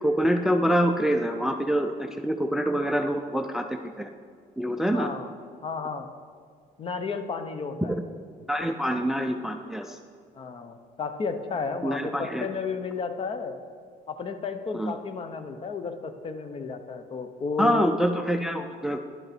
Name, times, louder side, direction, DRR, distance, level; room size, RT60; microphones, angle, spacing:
voice 1, 0.0-4.1 4.6-5.1 8.5-10.0 11.8-12.5 14.7-15.0 17.6-19.0, equal, ahead, 7 dB, 0.4 m, -25 dB
voice 2, 4.9-5.3 5.6-6.1 6.8-8.0 10.3-13.6 14.1-17.8, left 5 dB, 35° left, 9 dB, 0.7 m, -32 dB
10.0 x 6.5 x 4.3 m, 2.1 s
cardioid pair, 105°, 16 cm